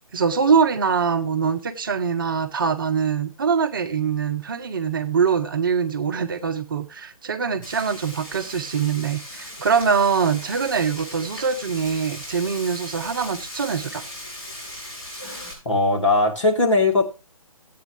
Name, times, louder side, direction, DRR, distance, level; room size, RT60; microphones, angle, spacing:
voice 1, 0.1-14.0, right 6 dB, 35° right, 0.8 m, -23 dB
Frying (food), 7.6-15.5, left 1 dB, 35° left, 5.5 m, -38 dB
voice 2, 15.7-17.0, left 2 dB, 60° left, 2.0 m, -19 dB
14.0 x 8.5 x 3.1 m
figure-of-eight pair, 150°, 18 cm